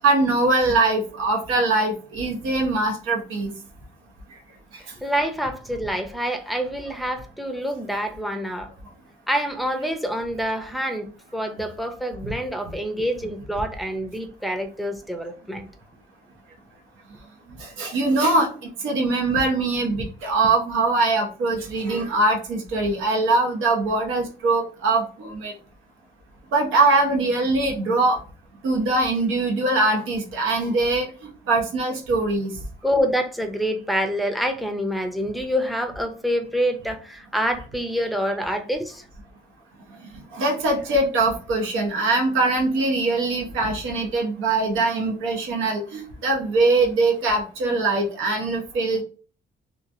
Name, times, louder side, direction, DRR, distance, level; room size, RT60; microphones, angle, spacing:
voice 1, 0.0-3.5 12.2-12.3 17.6-25.5 26.5-28.2 28.6-31.1 31.5-32.5 40.3-49.0, right 2 dB, 85° right, 0.8 m, -22 dB
voice 2, 5.0-8.7 9.3-15.7 32.8-39.0, equal, ahead, 0.5 m, -26 dB
3.0 x 2.3 x 2.6 m
cardioid pair, 90°, 20 cm